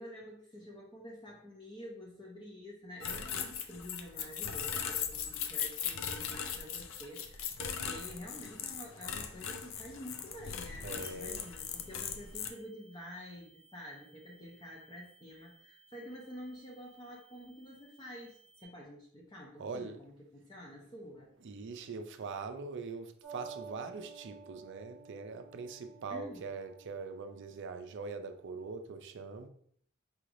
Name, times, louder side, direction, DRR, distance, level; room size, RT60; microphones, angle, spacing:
voice 1, 0.0-21.3 26.1-26.5, equal, 20° left, -3 dB, 0.6 m, -48 dB
sound 1, 3.0-12.5, left 7 dB, 65° left, 0.4 m, -39 dB
voice 2, 10.8-11.5 19.6-20.0 21.4-29.5, right 4 dB, 60° right, 8 dB, 0.4 m, -42 dB
sound 2, 11.0-18.6, right 3 dB, 15° right, 0.7 m, -63 dB
sound 3, 23.2-28.4, right 5 dB, ahead, 1.4 m, -52 dB
4.8 x 3.2 x 2.5 m, 0.63 s
head